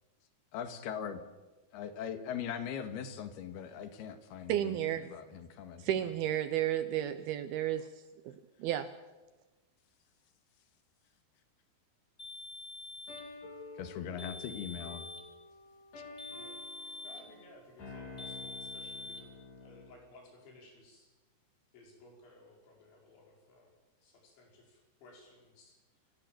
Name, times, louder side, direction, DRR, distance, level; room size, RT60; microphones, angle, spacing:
voice 1, 0.5-1.2 1.7-4.7 5.1-5.8 13.8-15.1, left 8 dB, 65° left, 8 dB, 3.4 m, -40 dB
voice 2, 4.5-5.2 5.8-7.9 8.2-8.9, right 11 dB, 75° right, 11 dB, 2.4 m, -32 dB
sound 1, 12.2-13.3 14.2-15.3 16.2-17.3 18.2-19.2, left 3 dB, 10° left, 2.8 m, -45 dB
sound 2, 13.1-20.0, left 3 dB, 50° left, 5.2 m, -50 dB
voice 3, 16.3-21.1 21.7-23.7 24.0-25.8, left 2 dB, 85° left, 0 dB, 7.7 m, -58 dB
29.0 x 15.5 x 7.8 m, 1.2 s
omnidirectional pair, 5.2 m